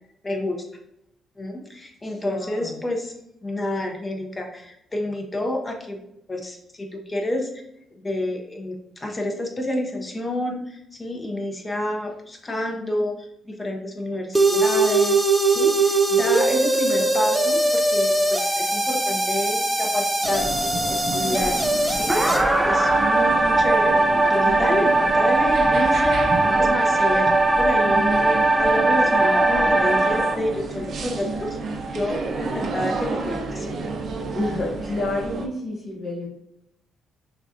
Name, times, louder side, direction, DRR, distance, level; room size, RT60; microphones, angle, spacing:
voice 1, 0.2-0.6 1.4-3.1 3.4-6.0 6.3-7.5 8.0-21.6 21.9-27.3 27.6-31.6 31.8-33.7, left 1 dB, 25° left, 1 dB, 0.8 m, -29 dB
voice 2, 2.0-2.8 34.3-36.3, left 1 dB, 50° left, -4 dB, 1.0 m, -29 dB
sound 1, 14.3-30.3, right 2 dB, 10° right, 0.5 m, -20 dB
sound 2, 20.2-35.5, right 3 dB, 55° right, 0.6 m, -30 dB
6.0 x 2.4 x 2.7 m, 0.81 s
cardioid pair, 90°, 0 cm